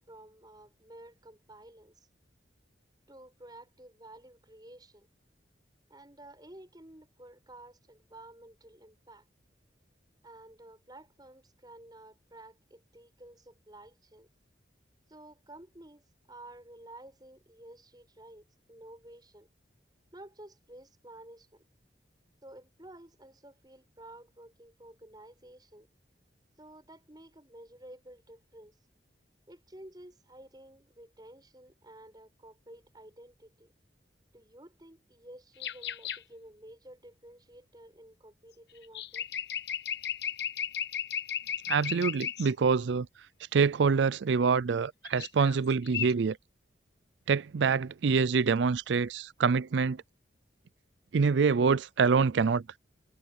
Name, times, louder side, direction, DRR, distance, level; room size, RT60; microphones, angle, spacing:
voice 1, 0.1-2.1 3.1-5.1 5.9-9.2 10.2-14.3 15.1-16.0 16.3-19.5 20.1-21.6 22.4-25.9 26.6-28.7 29.5-33.7 34.3-39.3, right 1 dB, 20° right, 7.0 m, -52 dB
sound 1, 35.6-36.2 38.8-42.5 45.0-45.6 45.8-46.1, left 9 dB, 65° left, 1.1 m, -35 dB
voice 2, 41.7-43.1 43.5-46.4 47.3-50.0 51.1-52.6, right 5 dB, 75° right, 0.4 m, -26 dB
head